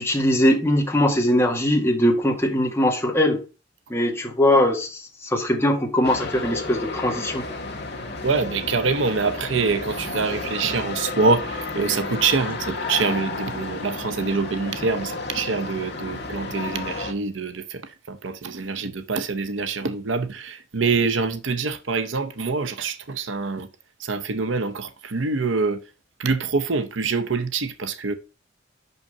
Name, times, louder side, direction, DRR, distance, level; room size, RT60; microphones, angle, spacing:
voice 1, 0.0-3.4 3.9-7.4, left 1 dB, 15° left, 1.8 m, -21 dB
sound 1, 6.0-17.1, left 3 dB, 60° left, 1.5 m, -32 dB
voice 2, 8.2-23.7 24.0-25.8 26.2-28.1, right 4 dB, 80° right, 0.8 m, -25 dB
5.9 x 5.6 x 5.5 m
head